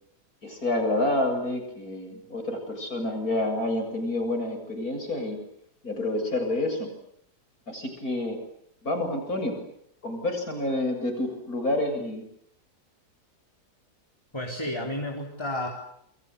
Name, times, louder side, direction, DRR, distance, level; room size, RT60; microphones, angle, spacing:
voice 1, 0.4-5.4 5.8-6.9 7.7-8.4 8.8-9.6 10.0-12.3, left 1 dB, 60° left, 4 dB, 8.2 m, -28 dB
voice 2, 14.3-15.7, left 1 dB, 15° left, 0 dB, 4.2 m, -31 dB
29.0 x 23.5 x 8.4 m, 0.71 s
omnidirectional pair, 1.7 m